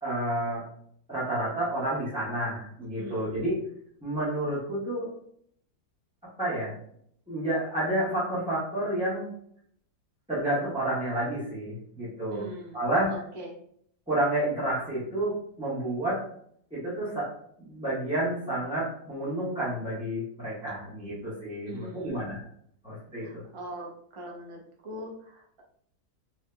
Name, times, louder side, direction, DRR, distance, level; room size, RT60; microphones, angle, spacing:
voice 1, 0.0-0.6 1.1-3.6 4.0-5.1 6.4-6.7 7.3-9.3 10.3-12.4 12.7-13.1 14.1-16.3 16.7-17.3 17.6-22.4 22.8-23.4, right 1 dB, 5° right, -12 dB, 1.2 m, -30 dB
voice 2, 3.0-3.5 12.3-13.6 21.7-22.3 23.1-25.6, equal, 40° right, -2 dB, 0.4 m, -42 dB
3.6 x 3.0 x 2.2 m, 0.65 s
omnidirectional pair, 1.7 m